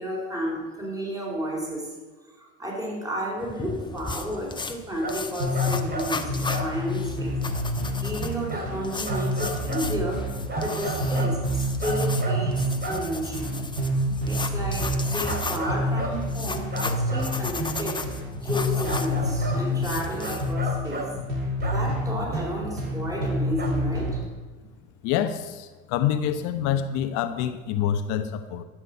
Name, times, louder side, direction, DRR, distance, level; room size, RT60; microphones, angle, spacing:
voice 1, 0.0-1.9 2.4-7.4 8.0-13.6 14.2-18.0 18.4-21.1 21.6-24.2, equal, 10° right, -2 dB, 4.8 m, -32 dB
sound 1, 3.4-20.5, left 3 dB, 15° left, 1.2 m, -36 dB
sound 2, 5.0-5.2 5.5-6.1 6.5-6.7 6.9-7.0 8.5-8.7 9.0-9.8 10.5-11.4 11.8-12.4 12.8-13.0 15.2-16.2 16.7-17.3 18.8-19.6 20.2-21.1 21.6-21.8 23.6-23.7, right 2 dB, 30° right, 2.9 m, -33 dB
sound 3, 5.4-24.2, equal, 85° right, 3.4 m, -28 dB
voice 2, 25.0-28.6, left 9 dB, 70° left, 10 dB, 1.1 m, -27 dB
13.0 x 6.2 x 8.5 m, 1.3 s
supercardioid pair, 80°, 30 cm